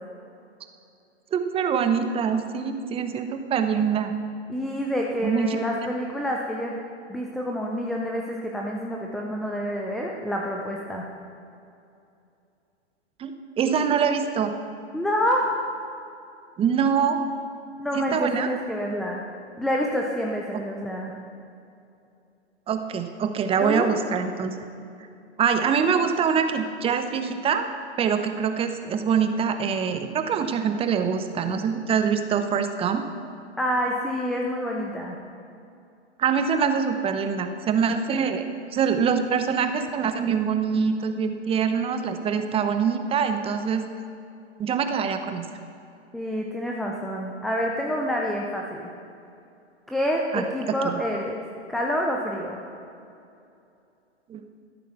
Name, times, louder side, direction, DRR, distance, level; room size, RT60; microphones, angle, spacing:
voice 1, 1.3-4.1 5.2-5.6 13.2-14.5 16.6-17.2 17.9-18.5 22.7-24.5 25.4-27.7 28.0-33.0 36.2-38.5 38.7-43.8 44.6-45.5 50.3-51.0 54.3-54.4, right 6 dB, 15° right, 8 dB, 0.8 m, -24 dB
voice 2, 4.5-6.8 7.1-11.1 14.9-15.6 17.8-19.2 19.6-21.1 23.6-23.9 33.6-35.2 46.1-48.9 49.9-51.4 51.7-52.6, equal, ahead, -1 dB, 0.3 m, -27 dB
13.0 x 10.0 x 5.9 m, 2.6 s
hypercardioid pair, 120°, 34 cm